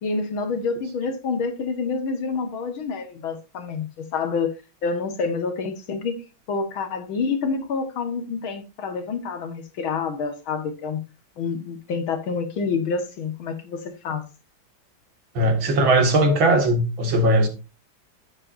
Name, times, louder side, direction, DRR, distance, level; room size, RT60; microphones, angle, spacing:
voice 1, 0.0-4.5 4.8-6.2 6.5-11.0 11.4-14.2, left 5 dB, 80° left, 2.3 m, -27 dB
voice 2, 15.3-17.5, right 1 dB, 75° right, 2.7 m, -19 dB
12.0 x 7.6 x 2.6 m
omnidirectional pair, 2.2 m